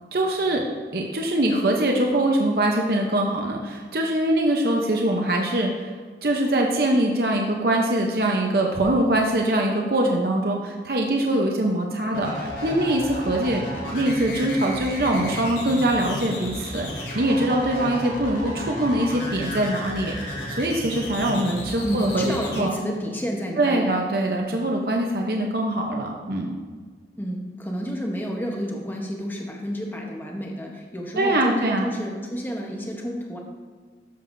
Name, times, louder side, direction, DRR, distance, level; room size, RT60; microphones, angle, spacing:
voice 1, 0.1-0.6 0.9-5.9 6.2-13.6 13.9-22.7 23.6-26.6 31.2-31.9, right 1 dB, 55° right, 0 dB, 0.8 m, -23 dB
sound 1, 12.1-22.6, left 1 dB, 75° left, 2.7 m, -33 dB
voice 2, 21.8-23.9 24.5-24.6 27.2-33.4, equal, 10° left, 0 dB, 1.0 m, -30 dB
13.0 x 7.0 x 2.6 m, 1.5 s
head